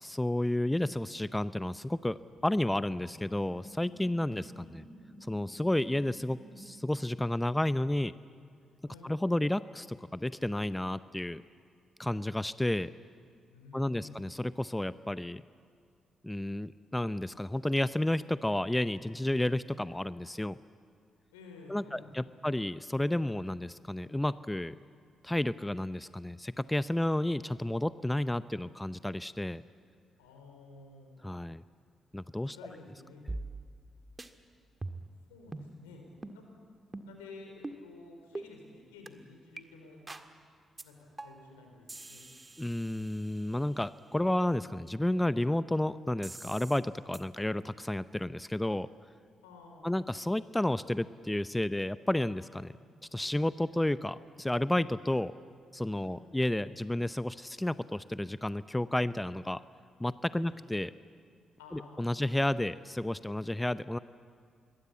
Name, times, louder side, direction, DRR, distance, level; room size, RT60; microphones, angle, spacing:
voice 1, 0.0-4.8 5.3-8.1 9.0-11.4 12.0-12.9 13.7-15.4 16.2-20.6 21.7-24.7 25.2-29.6 31.2-31.6 32.1-32.6 42.6-48.9 49.8-52.7 53.1-55.3 55.7-59.6 60.0-60.9 61.7-64.0, left 1 dB, 10° left, 15 dB, 0.7 m, -31 dB
sound 1, 1.8-6.6, equal, 50° left, 5.4 m, -53 dB
voice 2, 13.5-14.3 21.3-22.4 30.2-31.1 32.5-33.2 33.5-33.6 35.3-36.0 36.3-36.4 37.0-40.0 40.8-42.2 49.4-50.0 52.7-52.9 56.0-56.2 60.3-60.6 61.6-62.2, left 3 dB, 85° left, 2 dB, 4.2 m, -52 dB
sound 2, 33.3-33.9 34.2-34.3 34.8-35.2 35.5-35.7 36.2-36.4 36.9-37.2 37.6-37.8 38.3-38.5 39.1-39.2 39.6-39.7 40.1-40.3 40.8-40.9 41.2-41.5 41.9-43.7 46.2-46.8 47.1-47.2, right 2 dB, 25° right, 1.8 m, -43 dB
26.5 x 21.5 x 8.5 m, 2.2 s
hypercardioid pair, 40°, 0 cm